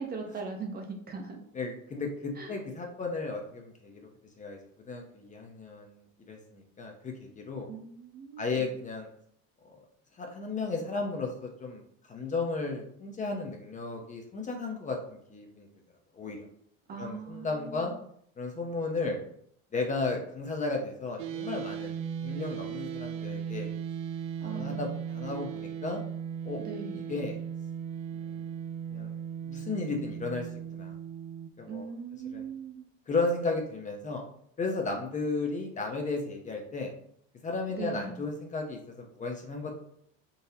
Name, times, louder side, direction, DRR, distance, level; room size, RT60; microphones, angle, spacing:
voice 1, 0.0-1.4 2.4-2.6 7.7-8.7 16.9-18.0 24.4-24.9 25.2-25.4 26.6-27.2 31.7-32.8 37.7-38.2, right 5 dB, 30° right, 3 dB, 0.6 m, -40 dB
voice 2, 1.5-4.0 4.4-4.6 4.9-5.9 6.3-7.7 8.4-9.1 9.6-9.8 10.2-11.8 12.1-15.7 16.1-16.4 17.0-17.9 18.4-19.2 19.7-21.9 22.2-23.7 24.4-26.0 26.4-26.6 26.9-27.4 28.1-28.4 28.9-29.1 29.4-30.5 30.8-30.9 31.6-31.8 32.3-32.4 33.1-34.2 34.6-36.9 37.4-39.8, left 3 dB, 25° left, 2 dB, 0.5 m, -34 dB
sound 1, 21.2-31.5, right 8 dB, 75° right, 0.5 m, -37 dB
3.9 x 2.6 x 2.6 m, 0.67 s
supercardioid pair, 115°, 32 cm